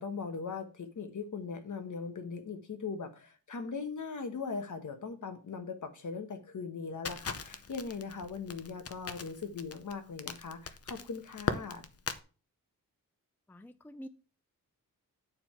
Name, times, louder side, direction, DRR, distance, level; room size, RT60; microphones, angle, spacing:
voice 1, 0.0-11.9, left 5 dB, 60° left, 1.3 m, -40 dB
Crackle, 7.0-12.2, left 5 dB, 45° left, 0.7 m, -39 dB
voice 2, 13.5-14.1, equal, 5° left, 0.5 m, -47 dB
9.4 x 4.5 x 4.5 m
wide cardioid pair, 105°, 34 cm